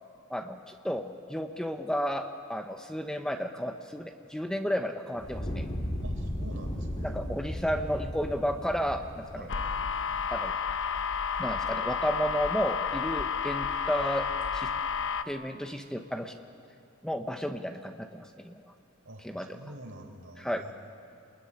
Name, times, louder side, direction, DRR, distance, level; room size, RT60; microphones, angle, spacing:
voice 1, 0.3-5.7 7.0-9.5 10.3-10.5 11.4-14.7 15.3-16.4 17.0-18.7 19.2-19.6 20.4-20.6, equal, 5° left, 6 dB, 0.9 m, -32 dB
Fire, 5.2-10.4, equal, 30° left, 2.1 m, -36 dB
voice 2, 6.0-7.1 7.4-8.2 9.3-9.6 19.0-20.7, right 1 dB, 65° right, 3 dB, 4.1 m, -48 dB
sound 1, 9.5-15.2, left 6 dB, 60° left, 0.8 m, -31 dB
28.0 x 21.0 x 9.9 m, 2.5 s
head